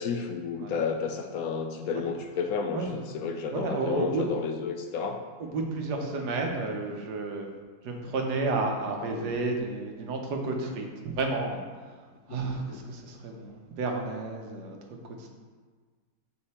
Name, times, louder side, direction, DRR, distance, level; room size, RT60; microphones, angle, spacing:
voice 1, 0.0-5.2 12.3-12.8, left 5 dB, 70° left, 4 dB, 0.9 m, -32 dB
voice 2, 3.5-4.3 5.4-7.5 7.8-14.8 15.2-15.3, right 3 dB, 80° right, 2 dB, 1.5 m, -31 dB
6.7 x 5.2 x 4.2 m, 1.5 s
omnidirectional pair, 1.7 m